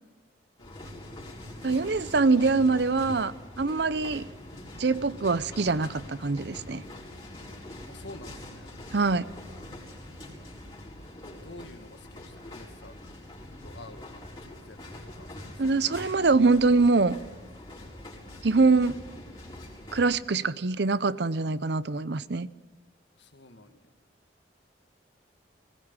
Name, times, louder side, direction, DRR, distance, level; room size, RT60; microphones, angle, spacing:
sound 1, 0.6-20.2, left 1 dB, 25° left, 4.6 m, -44 dB
voice 1, 1.6-4.3 4.8-6.8 8.9-9.3 15.6-17.2 18.4-19.0 19.9-22.5, right 3 dB, 65° right, 16 dB, 0.7 m, -24 dB
voice 2, 7.9-8.7 11.4-13.0 13.6-14.1 14.4-16.0 23.2-23.9, left 2 dB, 75° left, 7 dB, 1.8 m, -49 dB
19.5 x 19.0 x 8.9 m, 1.3 s
head